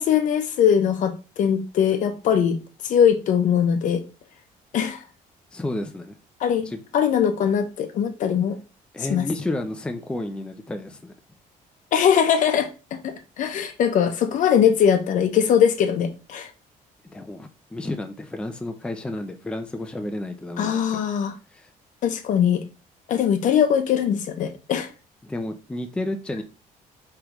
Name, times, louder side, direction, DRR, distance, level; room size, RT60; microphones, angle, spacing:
voice 1, 0.0-2.6 2.8-4.0 4.7-5.0 6.4-6.7 6.9-8.6 9.1-9.3 11.9-16.5 20.6-21.4 22.0-22.6 23.1-24.9, left 8 dB, 55° left, 0.7 m, -21 dB
voice 2, 5.5-6.2 6.7-6.8 8.9-11.1 17.0-21.0 21.5-21.7 25.2-26.4, left 1 dB, 5° left, 0.5 m, -31 dB
5.3 x 3.3 x 3.0 m
cardioid pair, 155°, 15 cm